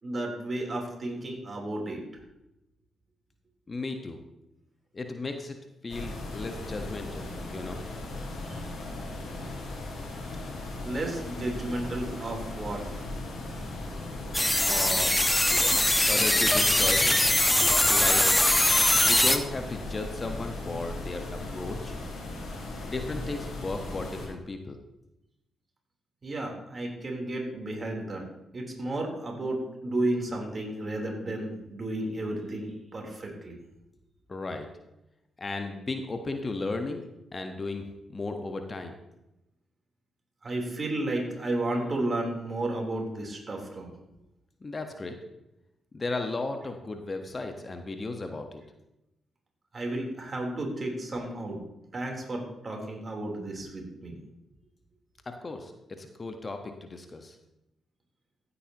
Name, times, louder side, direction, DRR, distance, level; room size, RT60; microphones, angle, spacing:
voice 1, 0.0-2.0 8.5-8.6 10.8-12.8 26.2-28.2 28.5-33.6 40.4-43.9 49.7-51.6 51.9-54.2, right 1 dB, 40° right, 0 dB, 3.7 m, -33 dB
voice 2, 3.7-4.2 4.9-5.6 5.8-7.8 14.7-15.1 16.1-17.3 17.9-18.2 19.1-21.9 22.8-24.8 34.3-34.7 35.4-37.8 38.1-38.9 44.6-45.1 45.9-48.6 55.3-57.3, left 3 dB, 35° left, 5 dB, 1.3 m, -35 dB
sound 1, 5.9-24.3, left 2 dB, 65° left, 4.1 m, -37 dB
sound 2, 14.3-19.4, left 1 dB, 15° left, 1.2 m, -22 dB
15.5 x 8.4 x 3.0 m, 0.90 s
hypercardioid pair, 40°, 0 cm